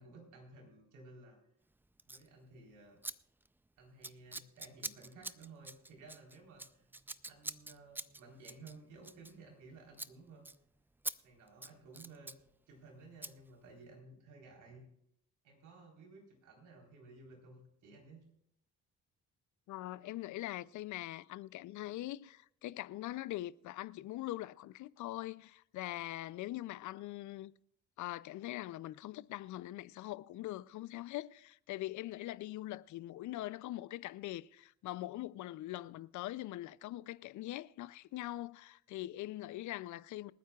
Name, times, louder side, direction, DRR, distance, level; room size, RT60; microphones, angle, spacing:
voice 1, 0.0-1.4 2.0-3.0 3.8-6.9 7.2-10.5 11.2-12.3 12.7-14.8 15.4-18.2, right 3 dB, 85° right, 3.9 m, -56 dB
Scissors, 2.0-2.3 3.0-3.1 3.4-3.7 4.0-9.7 9.9-10.1 10.4-10.6 11.0-11.2 11.5-12.4 13.2-13.3, right 2 dB, 5° right, 0.4 m, -45 dB
voice 2, 19.7-27.5 28.0-40.3, left 15 dB, 75° left, 0.5 m, -42 dB
28.0 x 9.3 x 2.3 m
cardioid pair, 90°, 30 cm